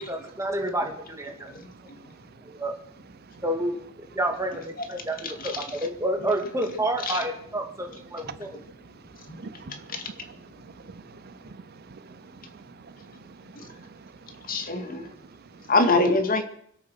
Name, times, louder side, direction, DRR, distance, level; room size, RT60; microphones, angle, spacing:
voice 1, 0.0-1.6 2.4-2.7 3.4-3.8 4.1-8.6, right 1 dB, 15° right, 3 dB, 2.4 m, -29 dB
voice 2, 1.6-2.0 3.2-3.4 8.3-8.4 8.8-15.7, right 5 dB, 50° right, 14 dB, 0.5 m, -47 dB
voice 3, 14.5-15.1 15.7-16.4, left 2 dB, 45° left, 6 dB, 2.1 m, -22 dB
24.5 x 8.8 x 6.3 m, 0.69 s
head